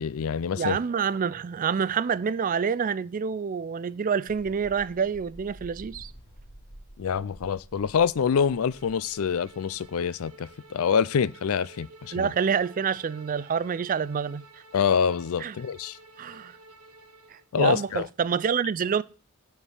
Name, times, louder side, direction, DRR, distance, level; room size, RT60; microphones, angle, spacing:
voice 1, 0.0-0.8 7.0-12.3 14.7-16.0 17.5-18.1, left 6 dB, 65° left, 0.4 m, -26 dB
voice 2, 0.6-6.1 12.1-14.4 15.4-15.6 16.2-16.6 17.3-19.0, right 6 dB, 40° right, 0.4 m, -27 dB
sound 1, 4.3-10.9, equal, 50° left, 2.7 m, -49 dB
Bowed string instrument, 8.3-17.5, right 3 dB, 75° right, 1.1 m, -52 dB
9.8 x 4.6 x 7.2 m
head